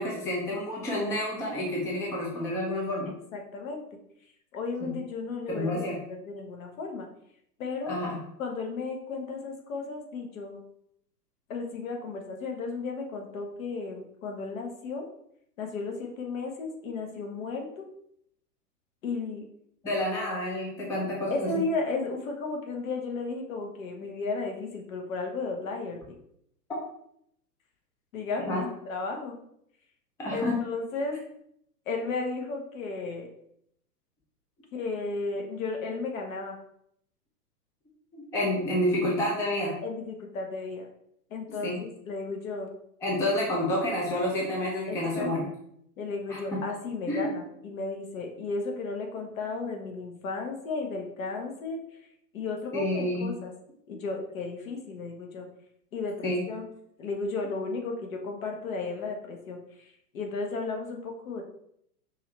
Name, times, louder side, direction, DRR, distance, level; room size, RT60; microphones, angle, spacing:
voice 1, 0.0-3.1 4.8-4.9 5.6-6.0 7.9-8.2 19.8-21.5 28.5-28.7 30.2-30.6 38.1-39.7 41.5-41.8 43.0-45.4 46.3-46.4 47.1-47.3 52.7-53.3 56.2-56.4, left 1 dB, 5° left, -3 dB, 0.5 m, -29 dB
voice 2, 3.3-3.8 4.5-7.1 7.6-7.9 8.4-10.6 11.5-15.1 15.6-17.8 19.0-19.5 21.3-26.0 28.1-29.4 30.3-31.2 31.9-33.3 34.7-36.6 39.8-40.9 41.3-42.7 44.9-45.3 46.0-51.8 52.3-53.5 53.9-55.4 55.9-56.7 57.0-59.6 60.1-61.4, left 3 dB, 55° left, 2 dB, 1.3 m, -34 dB
5.5 x 2.6 x 3.3 m, 0.72 s
figure-of-eight pair, 110°, 48 cm